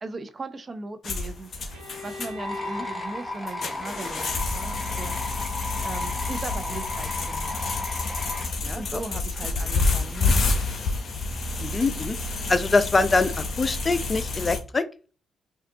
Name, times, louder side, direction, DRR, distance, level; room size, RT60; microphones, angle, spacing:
voice 1, 0.0-7.7 8.7-10.5, right 3 dB, 40° right, 9 dB, 0.6 m, -38 dB
sound 1, 1.0-14.6, left 3 dB, 50° left, 0.7 m, -29 dB
Bowed string instrument, 1.7-5.5, left 1 dB, 85° right, 1.1 m, -43 dB
sound 2, 2.4-8.5, left 2 dB, 5° left, 1.1 m, -34 dB
voice 2, 8.6-9.0 11.6-12.2 12.5-14.9, left 3 dB, 35° left, 14 dB, 0.4 m, -24 dB
5.7 x 2.4 x 2.7 m, 0.37 s
hypercardioid pair, 40°, 0 cm